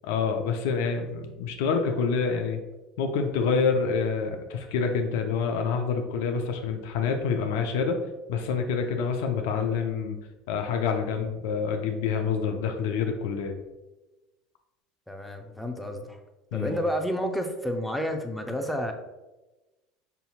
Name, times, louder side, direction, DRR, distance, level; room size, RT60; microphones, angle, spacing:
voice 1, 0.0-2.6 3.0-8.0 8.3-10.2 10.5-13.6 16.5-16.7, left 5 dB, 70° left, 5 dB, 0.4 m, -27 dB
voice 2, 15.1-16.2 16.5-18.9, equal, ahead, 4 dB, 0.6 m, -30 dB
5.6 x 2.7 x 2.4 m, 1.1 s
hypercardioid pair, 70°, 0 cm